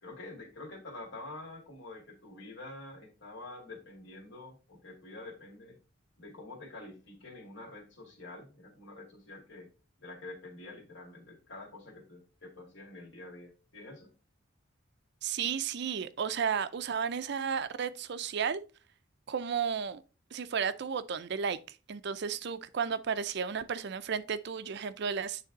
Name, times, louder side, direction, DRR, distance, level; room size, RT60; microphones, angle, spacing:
voice 1, 0.0-5.8 6.2-9.7 10.0-14.1, left 2 dB, 60° left, 2.4 m, -47 dB
voice 2, 15.2-18.6 19.3-20.0 20.3-21.6 21.9-25.5, right 6 dB, 60° right, 0.5 m, -33 dB
9.2 x 3.4 x 4.0 m
head